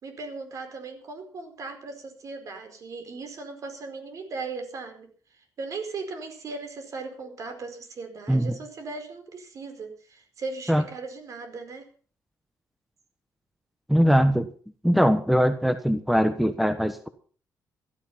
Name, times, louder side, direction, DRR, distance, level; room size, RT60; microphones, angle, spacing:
voice 1, 0.0-5.1 5.3-11.8, right 3 dB, 55° right, 7 dB, 4.7 m, -38 dB
voice 2, 13.9-14.5 14.8-17.1, equal, ahead, 9 dB, 1.2 m, -21 dB
16.5 x 12.5 x 5.6 m, 0.42 s
cardioid pair, 120°, 7 cm